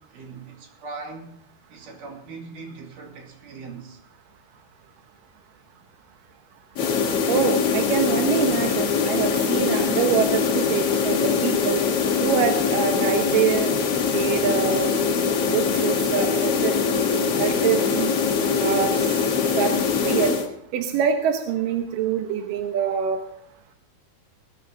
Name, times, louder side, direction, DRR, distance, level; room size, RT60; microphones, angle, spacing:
voice 1, 0.0-4.0, right 4 dB, 50° right, 3.7 m, -40 dB
sound 1, 6.7-20.5, left 5 dB, 55° left, 1.7 m, -22 dB
voice 2, 7.3-11.8 12.2-13.7 14.1-14.9 15.4-16.7 17.4-18.1 18.6-18.9 19.6-20.3 20.7-23.2, right 8 dB, 70° right, 2.2 m, -25 dB
19.5 x 13.5 x 3.9 m
omnidirectional pair, 5.0 m